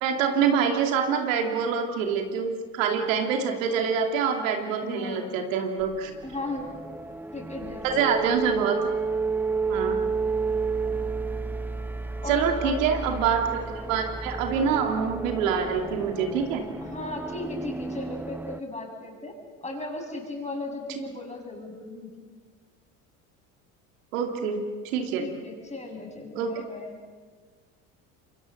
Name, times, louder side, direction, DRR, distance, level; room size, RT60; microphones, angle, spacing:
voice 1, 0.0-6.1 7.8-8.8 9.7-10.0 12.3-13.6 13.9-16.6 24.1-25.3 26.3-26.5, right 6 dB, 85° right, 4 dB, 2.8 m, -26 dB
voice 2, 4.8-5.3 6.2-6.7 7.3-8.1 12.2-12.9 16.8-22.3 25.2-27.0, left 2 dB, 15° left, 2 dB, 6.9 m, -36 dB
sound 1, 5.8-18.6, right 4 dB, 5° right, 0.8 m, -31 dB
27.0 x 23.0 x 6.7 m, 1.5 s
hypercardioid pair, 75°, 38 cm